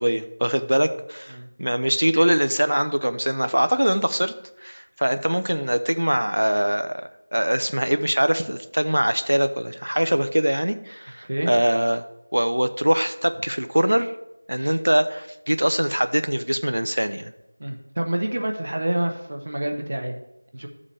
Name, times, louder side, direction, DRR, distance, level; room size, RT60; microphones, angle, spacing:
voice 1, 0.0-4.3 4.6-7.0 7.3-12.0 12.3-14.1 14.5-17.3, equal, 90° right, 10 dB, 0.7 m, -22 dB
voice 2, 17.6-20.2 20.5-20.7, right 1 dB, 30° right, 3 dB, 0.7 m, -27 dB
13.5 x 7.4 x 3.3 m, 0.88 s
figure-of-eight pair, 180°, 0 cm